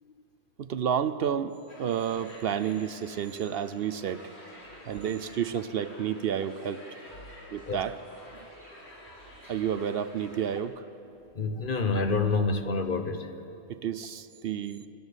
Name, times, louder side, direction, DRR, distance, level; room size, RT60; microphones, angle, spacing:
voice 1, 0.6-4.3 4.9-6.8 7.5-8.0 9.5-10.8 13.7-14.8, right 8 dB, 65° right, 12 dB, 0.8 m, -30 dB
sound 1, 1.7-10.6, left 1 dB, 75° left, 3.8 m, -50 dB
voice 2, 11.3-13.3, left 3 dB, 50° left, 7 dB, 1.2 m, -27 dB
25.5 x 12.5 x 8.1 m, 2.9 s
omnidirectional pair, 1.1 m